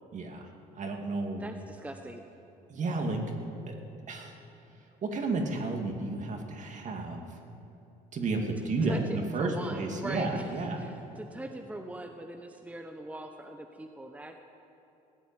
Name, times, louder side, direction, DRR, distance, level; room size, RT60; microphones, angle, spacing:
voice 1, 0.1-0.5 0.8-1.4 2.7-3.2 3.7-3.8 4.1-4.4 5.0-7.3 8.1-10.9, right 3 dB, 45° right, 3 dB, 2.4 m, -32 dB
voice 2, 1.4-2.2 8.6-10.5 10.8-14.4, right 1 dB, 10° right, 4 dB, 1.0 m, -41 dB
17.5 x 8.2 x 9.7 m, 2.9 s
supercardioid pair, 90°, 17 cm